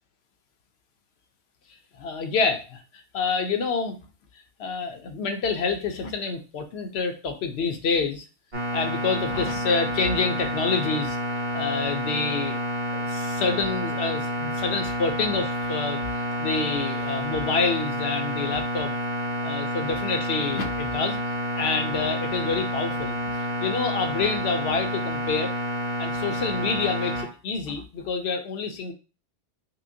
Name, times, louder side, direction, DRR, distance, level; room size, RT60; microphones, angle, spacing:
voice 1, 2.0-2.8 3.1-4.0 4.6-8.2 8.7-11.2 11.5-12.6 12.9-18.9 19.4-21.2 21.6-23.2 23.6-25.5 26.0-28.9, left 4 dB, 65° left, 6 dB, 0.8 m, -27 dB
sound 1, 8.5-27.2, equal, 40° right, 1.5 m, -29 dB
5.5 x 2.1 x 2.7 m, 0.33 s
omnidirectional pair, 1.3 m